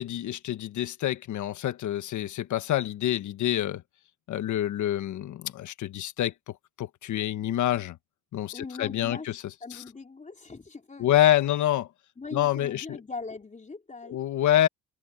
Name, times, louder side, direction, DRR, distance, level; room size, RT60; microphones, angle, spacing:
voice 1, 0.0-3.8 4.3-8.0 8.3-9.4 9.7-9.8 11.0-11.9 12.3-13.0 14.1-14.7, left 12 dB, 75° left, 1.4 m, -27 dB
voice 2, 8.5-9.3 9.6-11.1 12.2-14.2, left 3 dB, 25° left, 3.8 m, -40 dB
cardioid pair, 90°, 30 cm